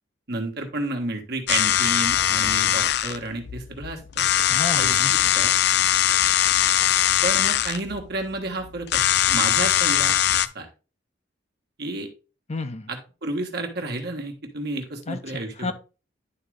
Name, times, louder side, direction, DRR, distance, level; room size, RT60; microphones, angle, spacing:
voice 1, 0.3-4.2 4.7-4.9 5.3-5.5 7.2-10.2 10.5-10.7 11.8-12.1 12.9-15.7, right 2 dB, 60° right, 3 dB, 1.5 m, -31 dB
sound 1, 1.5-10.5, left 11 dB, 60° left, 0.4 m, -21 dB
voice 2, 4.5-5.3 12.5-12.9 15.1-15.7, left 3 dB, 35° left, 8 dB, 0.7 m, -31 dB
11.0 x 3.7 x 3.4 m, 0.33 s
head